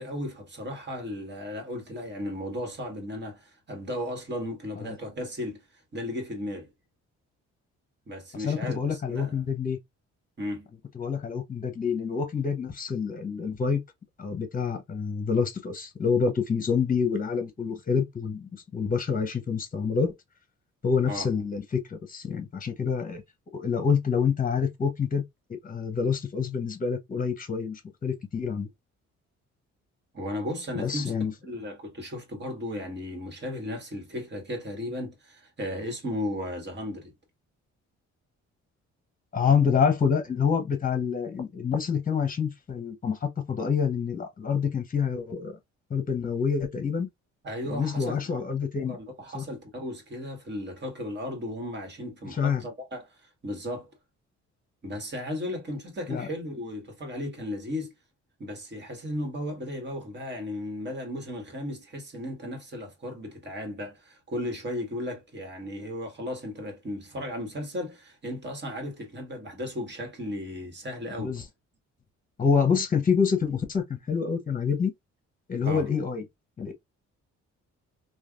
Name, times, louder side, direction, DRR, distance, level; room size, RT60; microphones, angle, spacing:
voice 1, 0.0-5.6 5.9-6.7 8.1-9.5 10.4-10.7 21.0-21.3 30.1-31.1 31.4-37.1 47.4-48.2 48.5-48.6 48.9-53.9 54.8-57.9 58.4-71.4 75.6-75.9, left 1 dB, 35° right, 1.6 m, -35 dB
voice 2, 8.4-9.8 10.9-13.8 14.2-20.1 20.8-23.2 23.5-25.2 25.5-28.7 30.7-31.3 39.3-45.6 45.9-47.1 47.7-48.9 49.3-49.4 52.4-52.6 56.1-56.3 71.2-71.4 72.4-74.9 75.5-76.2 76.6-76.7, left 6 dB, 30° left, 1.0 m, -27 dB
3.3 x 2.4 x 2.4 m
cardioid pair, 90°, 30 cm